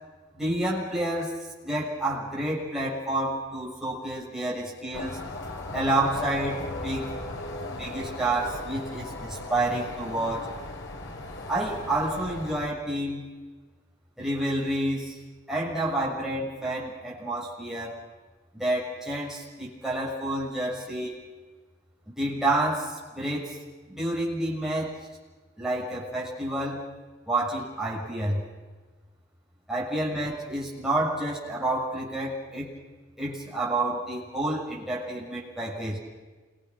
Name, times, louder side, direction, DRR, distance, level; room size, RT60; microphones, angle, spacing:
voice 1, 0.3-1.3 1.6-5.2 5.7-7.1 7.4-7.5 7.8-10.5 11.5-13.3 14.2-15.2 15.5-18.0 18.5-21.1 22.1-23.6 23.9-25.0 25.6-26.8 27.3-28.4 29.7-32.7 33.2-36.0, right 1 dB, ahead, -5 dB, 7.2 m, -29 dB
sound 1, 4.9-12.7, left 2 dB, 85° left, 3.7 m, -37 dB
28.5 x 24.5 x 6.3 m, 1.4 s
head